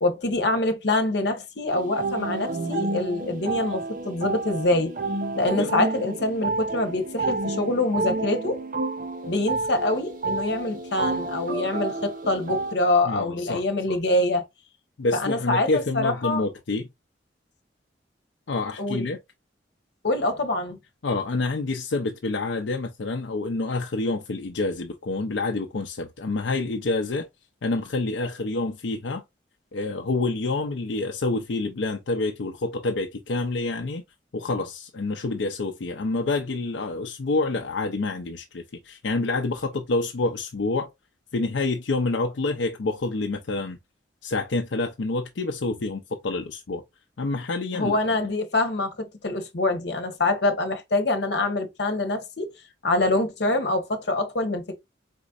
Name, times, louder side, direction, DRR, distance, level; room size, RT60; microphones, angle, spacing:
voice 1, 0.0-4.9 5.3-8.6 9.3-14.4 15.1-16.4 18.8-19.1 20.0-20.8 47.7-52.5 52.8-54.7, left 2 dB, 65° left, 1.1 m, -25 dB
sound 1, 1.7-12.7, right 3 dB, 50° right, 0.8 m, -30 dB
voice 2, 13.0-13.6 15.0-16.9 18.5-19.2 21.0-27.3 27.6-29.2 29.7-34.0 34.3-40.9 41.3-43.8 44.2-46.8 47.2-48.0, left 3 dB, 85° left, 0.6 m, -27 dB
4.4 x 4.1 x 2.4 m
head